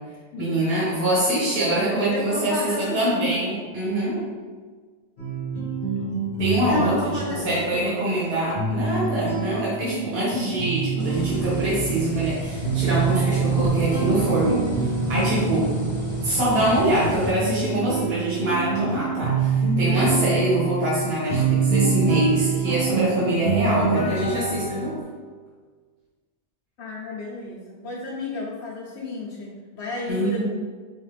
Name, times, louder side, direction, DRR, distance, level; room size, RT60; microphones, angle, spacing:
voice 1, 0.4-4.2 6.4-7.0 7.3-15.7 16.2-24.9 30.1-30.4, right 1 dB, 65° right, -8 dB, 1.4 m, -24 dB
voice 2, 2.1-3.5 6.6-8.3 13.4-13.7 26.8-30.4, left 2 dB, 85° left, -4 dB, 0.9 m, -32 dB
sound 1, 5.2-25.0, right 4 dB, 50° left, 1.0 m, -26 dB
sound 2, 11.0-17.3, right 1 dB, 35° left, 0.6 m, -33 dB
4.6 x 2.4 x 3.2 m, 1.5 s
omnidirectional pair, 1.1 m